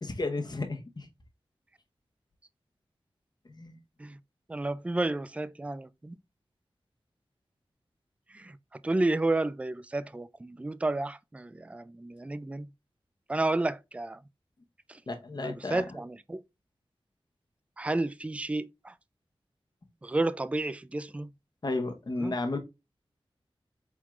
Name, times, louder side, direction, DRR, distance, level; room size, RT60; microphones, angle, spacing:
voice 1, 0.0-1.1 3.5-3.8 15.1-15.8 21.6-22.6, left 2 dB, 45° left, 0.9 m, -33 dB
voice 2, 4.5-6.2 8.3-8.6 8.8-12.7 13.3-14.2 14.9-15.0 15.4-16.4 17.8-18.9 20.0-21.3 22.2-22.3, right 2 dB, 15° right, 0.3 m, -31 dB
4.5 x 3.6 x 2.4 m
cardioid pair, 50°, 10 cm